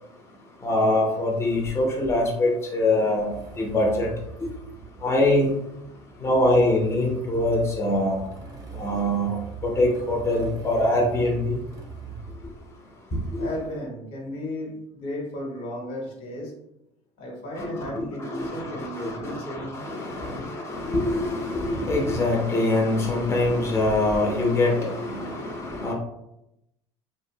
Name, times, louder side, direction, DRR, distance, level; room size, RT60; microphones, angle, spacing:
voice 1, 0.6-4.1 5.0-5.5 6.2-8.2 8.8-9.4 9.6-11.6 13.3-13.5 17.6-25.9, left 1 dB, 20° left, -1 dB, 0.5 m, -24 dB
Motorcycle / Engine starting, 3.3-12.4, right 4 dB, 25° right, 0.6 m, -40 dB
voice 2, 13.4-16.5 17.2-19.8 20.2-20.5, left 1 dB, 70° left, 0 dB, 0.9 m, -35 dB
2.4 x 2.1 x 2.6 m, 0.84 s
hypercardioid pair, 85°, 14 cm